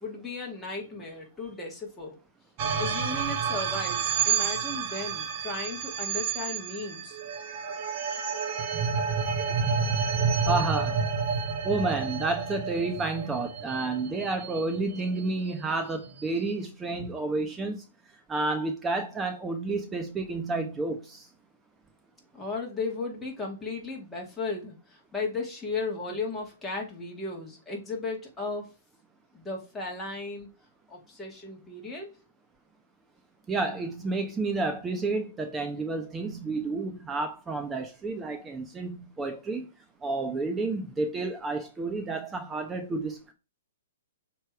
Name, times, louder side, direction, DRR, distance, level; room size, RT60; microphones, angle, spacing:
voice 1, 0.0-2.2 2.8-7.2 17.0-17.1 22.3-28.7 29.3-30.5 30.9-32.1, left 3 dB, 10° left, 2.1 m, -35 dB
sound 1, 2.6-15.0, right 6 dB, 35° right, 1.2 m, -29 dB
voice 2, 10.5-11.0 11.6-17.8 18.3-21.3 33.5-39.7 40.0-43.3, right 3 dB, 15° right, 0.8 m, -30 dB
6.5 x 3.1 x 4.7 m
hypercardioid pair, 140°, 0 cm